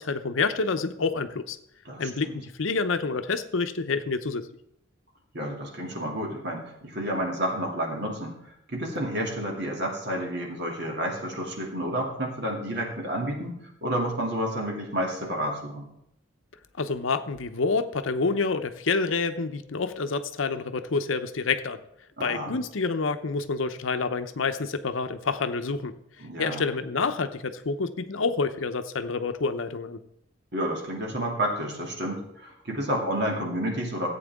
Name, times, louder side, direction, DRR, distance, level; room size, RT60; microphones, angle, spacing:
voice 1, 0.0-1.6 2.0-4.5 16.8-21.8 22.2-25.9 26.4-30.0, left 4 dB, 80° left, 10 dB, 0.7 m, -28 dB
voice 2, 1.8-2.4 5.3-8.4 8.7-15.9 22.2-22.6 26.2-26.7 30.5-34.1, right 1 dB, 55° right, 0 dB, 2.6 m, -30 dB
15.0 x 8.5 x 3.6 m, 0.77 s
head